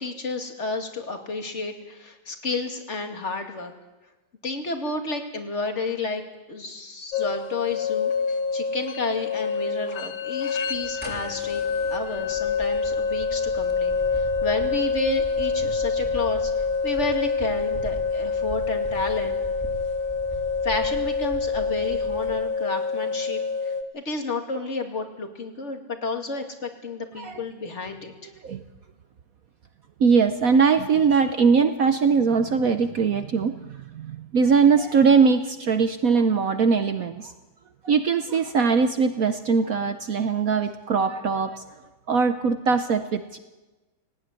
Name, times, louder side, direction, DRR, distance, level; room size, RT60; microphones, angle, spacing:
voice 1, 0.0-3.7 4.4-6.2 6.5-8.1 8.5-11.6 11.9-19.4 20.6-28.1, left 3 dB, 35° left, 4 dB, 2.5 m, -31 dB
sound 1, 7.1-23.8, left 5 dB, 75° left, 1.9 m, -26 dB
sound 2, 10.7-22.4, right 1 dB, 5° left, 2.6 m, -40 dB
voice 2, 30.0-37.3 37.8-41.6 42.1-43.4, right 5 dB, 55° right, 9 dB, 1.0 m, -21 dB
18.5 x 18.0 x 9.8 m, 1.1 s
omnidirectional pair, 2.2 m